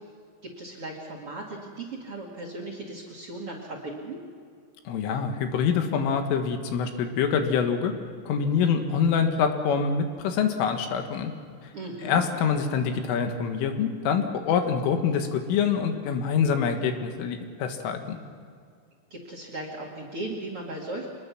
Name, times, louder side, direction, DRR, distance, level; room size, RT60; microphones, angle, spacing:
voice 1, 0.4-4.2 11.7-12.2 19.1-21.1, right 2 dB, 40° right, 1 dB, 2.2 m, -37 dB
voice 2, 4.9-7.9 8.3-11.3 12.0-18.2, left 6 dB, 85° left, 6 dB, 4.1 m, -25 dB
25.0 x 20.5 x 6.1 m, 2.2 s
omnidirectional pair, 5.6 m